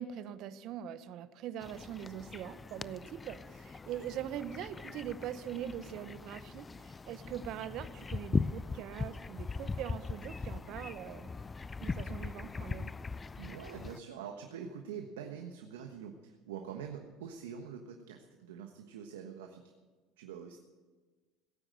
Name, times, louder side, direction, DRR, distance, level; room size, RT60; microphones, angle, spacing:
voice 1, 0.0-11.3 11.8-12.9, right 10 dB, 60° right, 14 dB, 0.9 m, -42 dB
sound 1, 1.6-14.0, left 4 dB, 20° left, 0.4 m, -40 dB
voice 2, 13.4-19.6 20.2-20.6, right 7 dB, 90° right, 4 dB, 1.3 m, -45 dB
17.0 x 9.2 x 7.7 m, 1.3 s
supercardioid pair, 90°, 0 cm